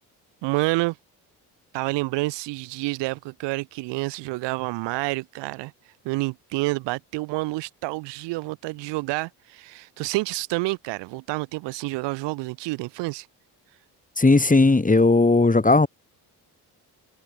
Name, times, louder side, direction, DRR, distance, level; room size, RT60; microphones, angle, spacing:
voice 1, 0.4-1.0 1.7-5.7 6.1-13.3, right 22 dB, 90° right, 1.9 m, -28 dB
voice 2, 14.2-15.9, left 3 dB, 20° left, 4.7 m, -17 dB
supercardioid pair, 70°, 41 cm